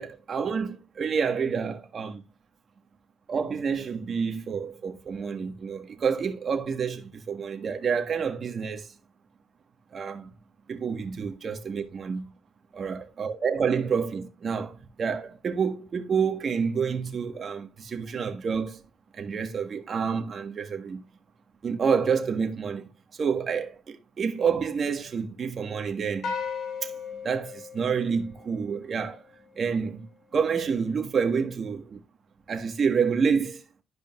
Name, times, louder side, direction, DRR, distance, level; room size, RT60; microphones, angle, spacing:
voice 1, 0.0-2.2 3.3-8.9 9.9-10.3 10.7-12.3 12.7-18.8 19.1-21.0 21.6-26.3 26.8-26.9 27.2-29.2 29.5-30.1 30.3-32.0 32.5-33.6, right 6 dB, 50° right, 1.5 m, -28 dB
sound 1, 26.2-28.8, left 5 dB, 70° left, 3.8 m, -36 dB
12.5 x 5.2 x 2.5 m
cardioid pair, 90°, 0 cm